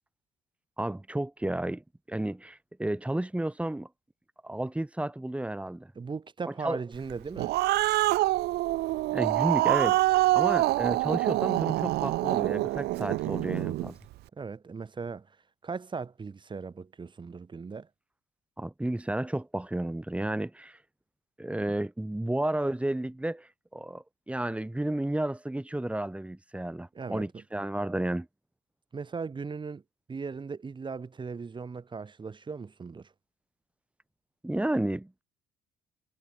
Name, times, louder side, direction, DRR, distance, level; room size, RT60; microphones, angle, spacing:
voice 1, 0.8-3.9 4.4-5.9 6.6-6.8 9.1-10.0 10.3-14.0 18.6-20.8 21.4-28.3 34.4-35.2, right 1 dB, 5° right, 8.0 m, -32 dB
voice 2, 6.0-7.5 14.3-15.4 15.6-17.9 26.9-27.4 28.9-29.8 30.1-33.1, right 5 dB, 30° right, 7.5 m, -38 dB
Growling, 7.1-13.9, right 17 dB, 75° right, 0.7 m, -26 dB
cardioid pair, 110°, 17 cm